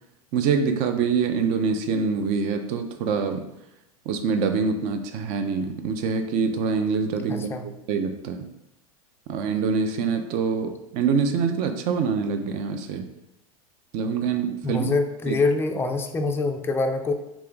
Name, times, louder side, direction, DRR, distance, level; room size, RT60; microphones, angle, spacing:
voice 1, 0.3-3.5 4.1-8.5 9.3-13.1 13.9-14.9 15.3-15.4, right 5 dB, 45° right, 7 dB, 0.5 m, -25 dB
voice 2, 7.3-7.6 14.6-17.1, left 3 dB, 10° left, 5 dB, 0.4 m, -25 dB
3.3 x 3.0 x 3.6 m, 0.89 s
hypercardioid pair, 95°, 19 cm